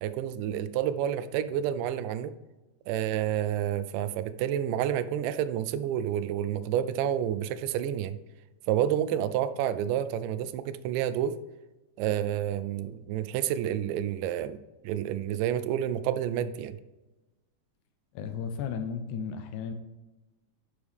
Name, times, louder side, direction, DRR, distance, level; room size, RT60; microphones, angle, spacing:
voice 1, 0.0-2.3 2.9-8.2 8.7-11.4 12.0-14.6 14.8-16.8, right 10 dB, 80° right, 12 dB, 2.0 m, -29 dB
voice 2, 18.1-19.7, left 6 dB, 75° left, 7 dB, 1.9 m, -34 dB
11.0 x 5.1 x 3.5 m, 1.1 s
omnidirectional pair, 4.0 m